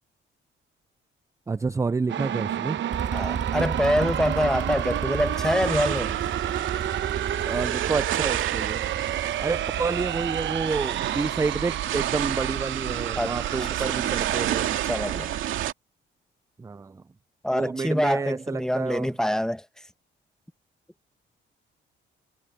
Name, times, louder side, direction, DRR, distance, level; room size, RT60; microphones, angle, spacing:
voice 1, 1.5-2.8 7.5-8.8 9.4-14.8 16.6-17.0 17.5-19.1, right 4 dB, 15° right, 0.4 m, -29 dB
sound 1, 2.1-14.6, right 11 dB, 70° right, 1.0 m, -31 dB
sound 2, 2.9-11.0, right 6 dB, 40° right, 1.5 m, -34 dB
voice 2, 3.1-6.1 13.1-13.3 13.6-13.7 14.9-15.4 17.4-19.6, equal, 5° left, 1.3 m, -25 dB
sound 3, 4.3-15.7, right 12 dB, 85° right, 2.3 m, -31 dB
cardioid pair, 90°, 20 cm